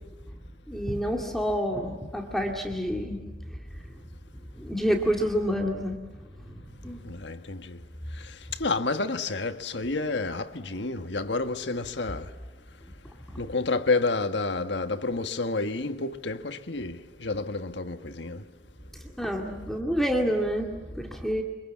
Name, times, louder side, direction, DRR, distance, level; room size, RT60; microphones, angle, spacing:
voice 1, 0.7-3.2 4.6-6.0 6.5-6.6 6.8-7.0 19.2-21.4, equal, ahead, 2.2 m, -28 dB
voice 2, 7.0-7.8 8.2-12.3 13.4-18.4, left 3 dB, 90° left, 1.5 m, -30 dB
28.0 x 25.5 x 7.4 m
head